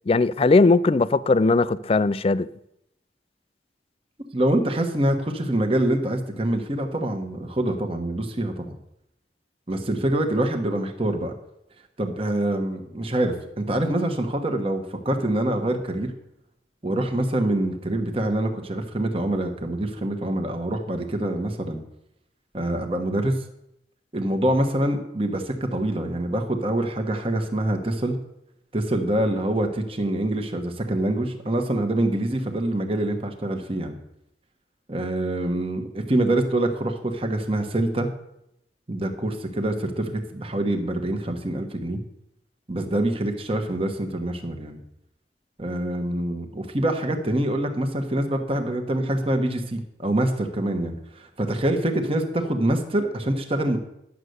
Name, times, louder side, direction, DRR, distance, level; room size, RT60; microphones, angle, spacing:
voice 1, 0.1-2.5, left 3 dB, 30° left, 0.4 m, -19 dB
voice 2, 4.3-8.7 9.7-11.3 12.0-16.1 16.8-21.8 22.5-23.4 24.1-28.2 28.7-34.0 34.9-38.1 38.9-42.0 42.7-44.8 45.6-53.8, right 1 dB, 30° right, 1.2 m, -25 dB
11.0 x 6.6 x 8.0 m
head